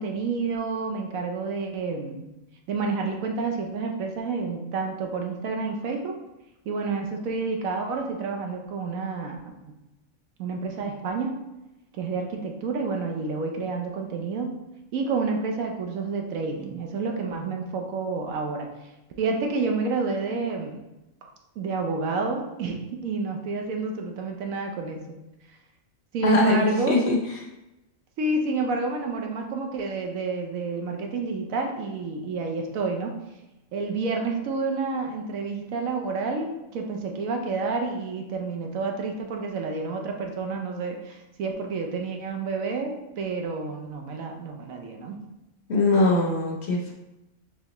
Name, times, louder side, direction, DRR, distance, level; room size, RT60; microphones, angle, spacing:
voice 1, 0.0-2.2 2.7-6.2 6.7-9.7 10.4-11.3 11.9-14.5 14.9-18.7 19.2-20.8 21.2-21.3 21.6-25.0 26.1-27.0 28.2-33.1 33.7-45.2, right 4 dB, 80° right, 3 dB, 1.1 m, -29 dB
voice 2, 26.2-27.2 45.7-46.9, left 2 dB, 55° left, -1 dB, 0.9 m, -21 dB
4.6 x 3.3 x 2.9 m, 0.96 s
omnidirectional pair, 1.4 m